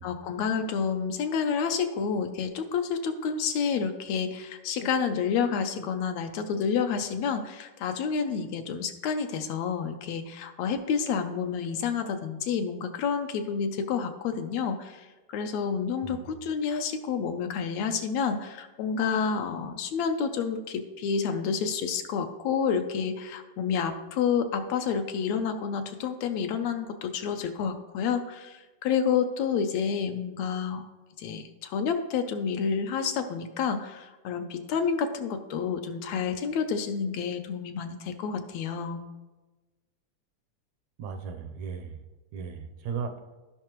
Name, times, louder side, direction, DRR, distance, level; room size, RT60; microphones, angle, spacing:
voice 1, 0.0-30.9 31.2-39.1, left 6 dB, 75° left, 7 dB, 1.8 m, -29 dB
voice 2, 41.0-42.0 42.3-43.1, right 6 dB, 80° right, 6 dB, 1.9 m, -36 dB
16.5 x 5.6 x 3.0 m, 1.2 s
omnidirectional pair, 3.4 m